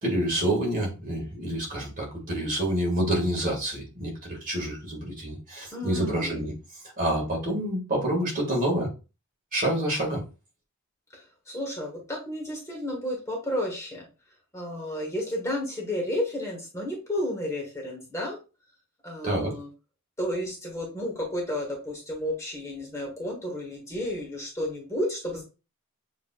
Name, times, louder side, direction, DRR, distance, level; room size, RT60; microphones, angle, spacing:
voice 1, 0.0-6.5 7.0-8.9 9.5-10.2 19.2-19.5, right 1 dB, 40° right, -1 dB, 2.0 m, -27 dB
voice 2, 5.7-6.4 11.1-14.1 14.5-18.4 19.0-19.7 20.2-25.4, left 1 dB, 15° left, -1 dB, 1.3 m, -32 dB
7.0 x 2.9 x 2.4 m, 0.30 s
head